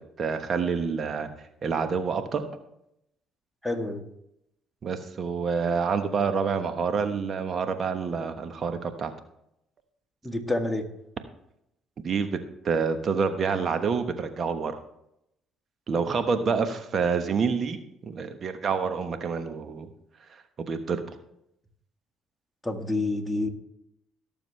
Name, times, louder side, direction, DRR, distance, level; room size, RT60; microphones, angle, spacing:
voice 1, 0.2-1.3 1.6-2.4 4.8-9.1 12.0-12.4 12.6-14.8 15.9-19.9 20.3-21.2, right 5 dB, 50° right, 8 dB, 1.2 m, -27 dB
voice 2, 3.6-4.0 10.2-10.9 16.4-16.5 22.6-23.5, left 2 dB, 5° left, 3 dB, 1.9 m, -28 dB
17.5 x 7.1 x 3.4 m, 0.80 s
hypercardioid pair, 55°, 0 cm